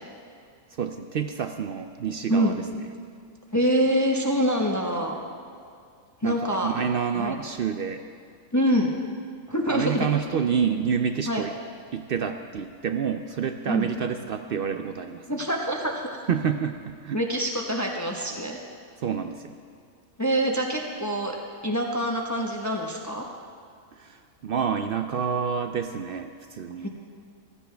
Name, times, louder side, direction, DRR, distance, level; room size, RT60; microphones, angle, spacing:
voice 1, 0.7-2.8 6.2-8.0 9.7-11.5 11.9-15.3 16.3-17.2 19.0-19.5 24.0-26.9, right 7 dB, 70° right, 7 dB, 0.5 m, -28 dB
voice 2, 3.5-5.1 6.2-6.7 7.1-7.3 8.5-8.9 9.5-10.0 11.3-11.4 13.7-13.9 15.3-16.1 17.1-18.6 20.2-21.4 21.6-23.3 26.8-26.9, equal, 15° left, 0 dB, 0.9 m, -25 dB
15.5 x 14.0 x 3.4 m, 2.3 s
omnidirectional pair, 1.5 m